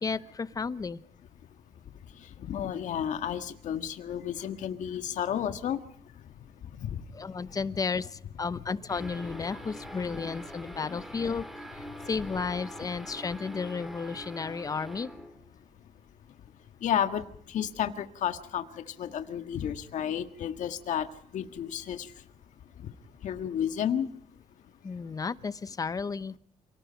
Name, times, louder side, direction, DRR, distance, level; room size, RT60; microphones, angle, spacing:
voice 1, 0.0-1.0 7.1-11.5 11.7-15.1 24.8-26.3, left 5 dB, 25° left, 16 dB, 0.9 m, -33 dB
voice 2, 2.4-5.8 6.8-7.0 10.9-11.0 16.8-17.2 17.5-21.1 21.3-22.1 23.2-24.1, left 9 dB, 65° left, 9 dB, 1.7 m, -31 dB
sound 1, 8.9-15.5, equal, ahead, 2.6 m, -44 dB
28.5 x 18.5 x 5.2 m, 0.64 s
cardioid pair, 140°, 13 cm